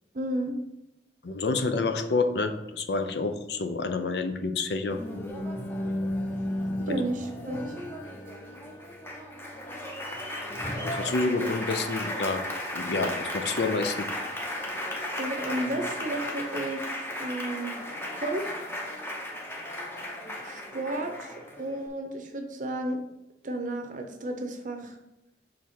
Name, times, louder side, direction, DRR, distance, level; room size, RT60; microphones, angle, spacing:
voice 1, 0.1-0.6 6.9-7.7 15.1-16.9 17.2-17.7 18.1-18.5 20.4-23.0 23.4-25.0, right 1 dB, 45° right, 4 dB, 0.7 m, -32 dB
voice 2, 1.2-5.0 6.9-7.0 10.8-12.4 12.7-14.1, left 3 dB, 65° left, 7 dB, 0.6 m, -28 dB
Applause, 4.9-21.9, left 1 dB, 10° left, 0.7 m, -34 dB
6.4 x 3.6 x 4.3 m, 0.88 s
head